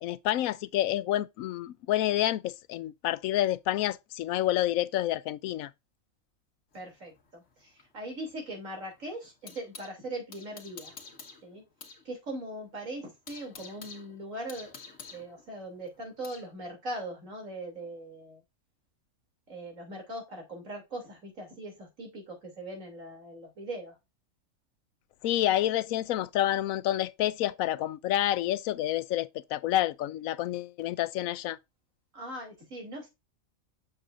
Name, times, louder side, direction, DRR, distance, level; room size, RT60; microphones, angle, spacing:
voice 1, 0.0-5.7 25.2-31.6, left 13 dB, 85° left, 1.0 m, -28 dB
sound 1, 6.7-10.0 10.3-12.0 12.3-12.4 12.8-16.5, left 5 dB, 65° left, 1.6 m, -49 dB
voice 2, 6.7-10.9 11.4-11.6 12.0-14.8 15.1-18.4 19.5-24.0 32.1-33.1, right 1 dB, 75° right, 3.2 m, -40 dB
7.5 x 6.7 x 2.5 m
omnidirectional pair, 1.4 m